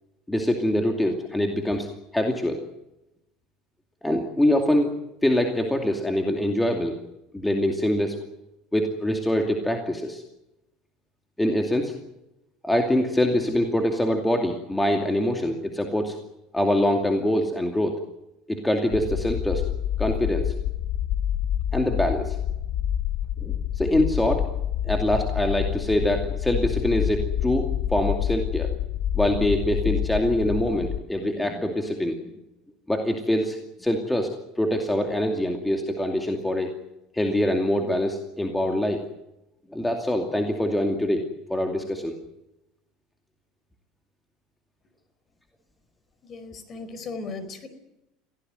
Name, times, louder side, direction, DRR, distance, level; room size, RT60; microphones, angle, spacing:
voice 1, 0.3-1.9 2.1-2.6 4.0-4.9 5.2-7.0 7.3-8.2 8.7-10.2 11.4-11.9 12.6-16.2 16.5-18.0 18.5-19.6 20.0-20.5 21.7-22.4 23.4-24.4 24.8-28.7 29.1-32.3 32.9-34.3 34.6-36.7 37.1-39.0 39.7-41.2 41.5-42.1, left 1 dB, 5° left, 3 dB, 2.5 m, -24 dB
sound 1, 18.9-31.0, left 11 dB, 55° left, 1.1 m, -28 dB
voice 2, 46.2-47.7, left 3 dB, 35° left, 11 dB, 4.8 m, -37 dB
23.5 x 17.0 x 9.2 m, 0.90 s
supercardioid pair, 135°, 0 cm